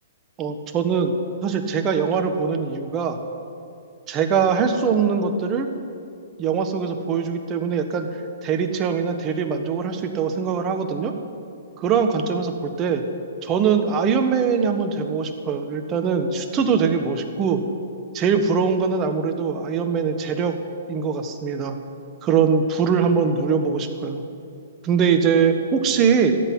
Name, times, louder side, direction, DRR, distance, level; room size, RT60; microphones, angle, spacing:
voice 1, 0.4-1.2 1.4-3.2 4.1-5.7 6.4-8.1 8.4-11.1 11.8-13.0 13.4-17.6 18.1-20.5 20.9-21.8 22.2-24.2 24.8-26.3, right 6 dB, 25° right, 6 dB, 1.5 m, -22 dB
14.0 x 8.4 x 9.6 m, 2.4 s
hypercardioid pair, 130°, 0 cm